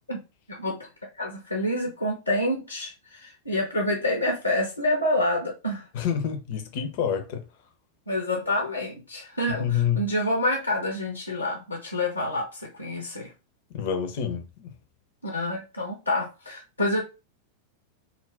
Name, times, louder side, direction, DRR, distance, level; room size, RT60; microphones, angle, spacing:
voice 1, 0.5-0.9 1.2-5.9 8.1-13.3 15.2-17.0, left 1 dB, 85° left, 0.7 m, -27 dB
voice 2, 5.9-7.4 9.5-10.0 13.7-14.7, left 8 dB, 50° left, 0.6 m, -27 dB
2.4 x 2.1 x 3.3 m
figure-of-eight pair, 90°, 0 cm